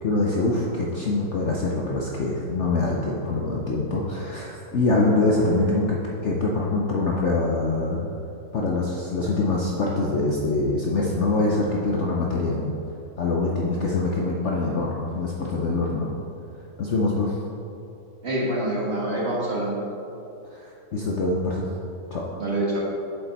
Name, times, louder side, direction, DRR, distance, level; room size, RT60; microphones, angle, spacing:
voice 1, 0.0-8.1 8.5-12.7 13.2-16.1 16.8-17.4 20.5-21.7 22.1-22.2, left 2 dB, 60° left, -2 dB, 0.8 m, -24 dB
voice 2, 18.2-19.8 22.4-22.8, right 1 dB, 40° right, -4 dB, 1.6 m, -26 dB
7.6 x 6.9 x 4.0 m, 2.8 s
omnidirectional pair, 1.8 m